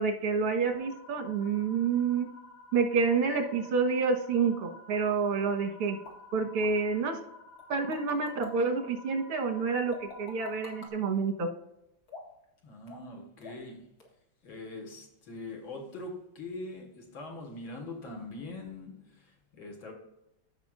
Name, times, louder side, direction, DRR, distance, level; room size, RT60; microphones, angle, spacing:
voice 1, 0.0-2.3 2.7-6.0 6.3-7.2 7.7-11.5, right 5 dB, 90° right, 4 dB, 2.2 m, -28 dB
sound 1, 0.7-10.9, left 2 dB, 85° left, 2.1 m, -52 dB
sound 2, 6.0-6.2 6.6-6.7 7.6-8.7 9.9-10.9 12.1-12.4 12.9-13.1 13.4-13.7 14.0-14.1, left 2 dB, 45° left, 2.2 m, -47 dB
voice 2, 12.6-13.8 14.4-19.9, left 2 dB, 65° left, 1 dB, 2.4 m, -42 dB
15.0 x 5.9 x 2.5 m, 0.85 s
omnidirectional pair, 2.4 m